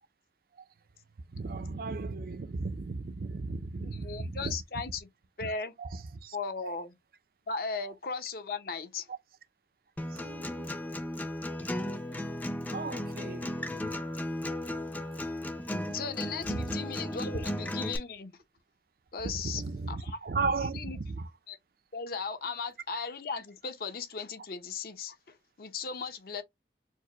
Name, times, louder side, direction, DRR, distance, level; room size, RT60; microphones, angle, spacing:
voice 1, 1.3-4.6 5.4-5.5 5.8-6.4 6.6-6.8 10.1-10.9 12.7-13.6 16.5-16.7 19.2-21.3, right 3 dB, 55° right, 0.5 m, -35 dB
voice 2, 3.8-5.1 5.4-5.7 6.3-6.9 7.5-9.1 15.9-18.4 19.1-20.2 20.7-21.0 21.5-21.6 21.9-26.4, left 5 dB, 55° left, 0.7 m, -37 dB
Acoustic guitar, 10.0-18.0, left 1 dB, 10° left, 0.4 m, -35 dB
4.6 x 2.0 x 3.0 m
head